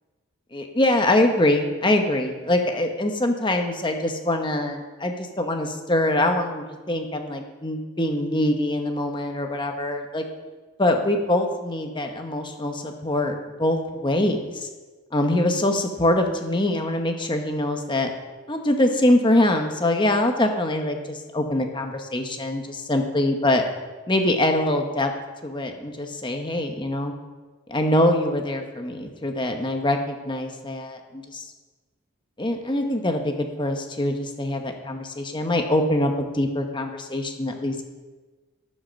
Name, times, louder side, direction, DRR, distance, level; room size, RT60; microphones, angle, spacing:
voice 1, 0.5-10.2 10.8-14.7 15.1-18.1 18.5-23.6 24.1-25.1 25.4-27.1 27.7-31.4 32.4-37.8, left 1 dB, 20° left, 4 dB, 1.0 m, -24 dB
11.0 x 7.8 x 6.3 m, 1.3 s
head